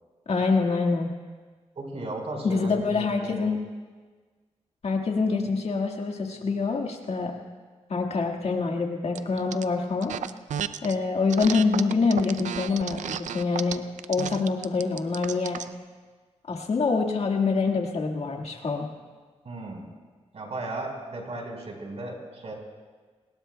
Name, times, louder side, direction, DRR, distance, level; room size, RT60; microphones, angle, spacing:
voice 1, 0.3-1.1 2.4-3.6 4.8-7.3 7.9-10.1 10.8-13.8 14.1-15.6 16.5-18.9, left 4 dB, 60° left, 2 dB, 1.9 m, -25 dB
voice 2, 1.7-3.5 19.4-19.9 20.3-22.5, right 2 dB, 60° right, 1 dB, 4.7 m, -36 dB
sound 1, 9.1-9.6 10.0-10.9 11.3-15.7, right 8 dB, 85° right, 0.5 m, -33 dB
28.0 x 20.0 x 2.3 m, 1.4 s
cardioid pair, 70°, 12 cm